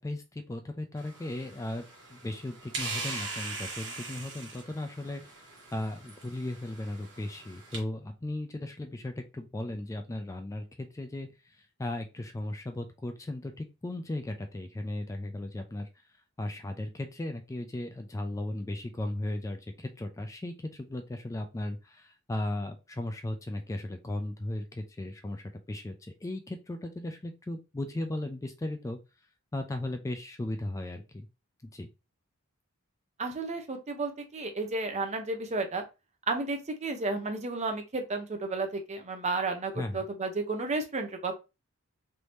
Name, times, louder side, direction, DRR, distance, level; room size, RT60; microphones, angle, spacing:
voice 1, 0.0-1.8 2.1-5.2 5.7-15.9 16.4-29.0 29.5-31.3 31.7-31.9 39.8-40.0, left 1 dB, 15° left, 5 dB, 0.3 m, -36 dB
sound 1, 1.0-7.8, right 3 dB, 60° right, 1.3 m, -41 dB
voice 2, 33.2-35.8 36.3-41.3, right 3 dB, 30° right, 5 dB, 0.6 m, -32 dB
3.4 x 2.7 x 3.1 m, 0.27 s
head